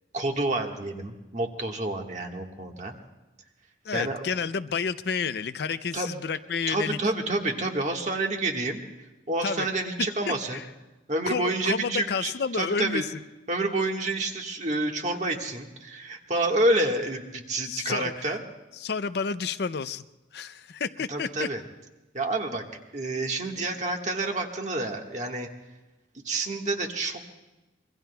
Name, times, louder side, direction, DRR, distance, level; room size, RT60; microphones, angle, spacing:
voice 1, 0.1-2.9 3.9-4.2 5.9-6.1 6.7-8.8 9.3-10.6 11.1-13.0 13.5-18.4 21.1-21.6 22.1-22.6 22.9-25.5 26.1-27.3, right 2 dB, 40° right, 2 dB, 1.5 m, -28 dB
voice 2, 3.8-7.0 9.4-9.7 10.3-10.7 11.3-13.1 17.7-18.4 18.8-20.0 20.3-21.5, left 5 dB, 60° left, 13 dB, 0.5 m, -30 dB
26.0 x 22.5 x 2.3 m, 1.1 s
head